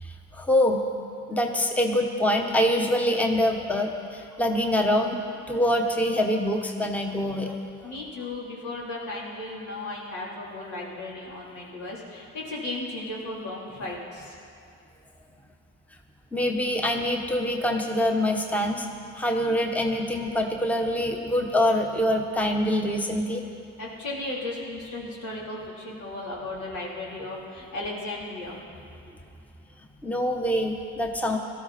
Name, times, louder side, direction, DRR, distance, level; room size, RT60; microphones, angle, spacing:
voice 1, 0.0-0.8 1.3-5.2 5.5-7.6 16.3-18.9 19.2-23.4 30.0-31.4, left 1 dB, 5° left, 3 dB, 1.0 m, -25 dB
voice 2, 7.8-14.4 23.8-28.6, left 2 dB, 75° left, -5 dB, 3.5 m, -35 dB
17.5 x 13.0 x 4.3 m, 2.5 s
cardioid pair, 90°, 30 cm